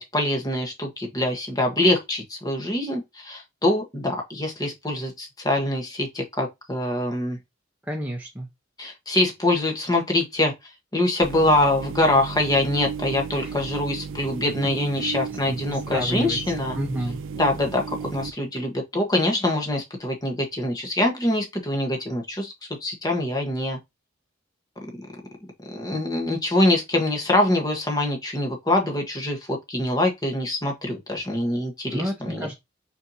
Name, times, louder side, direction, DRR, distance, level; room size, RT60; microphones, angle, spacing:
voice 1, 0.0-7.4 8.8-10.5 10.9-16.8 17.3-22.5 22.8-23.8 25.7-32.5, left 1 dB, 20° left, 1.2 m, -24 dB
voice 2, 7.8-8.5 13.4-13.5 15.0-16.4 16.7-17.2 31.9-32.5, equal, 10° right, 0.8 m, -30 dB
sound 1, 11.2-18.3, right 6 dB, 85° right, 0.4 m, -34 dB
4.5 x 4.3 x 2.7 m
head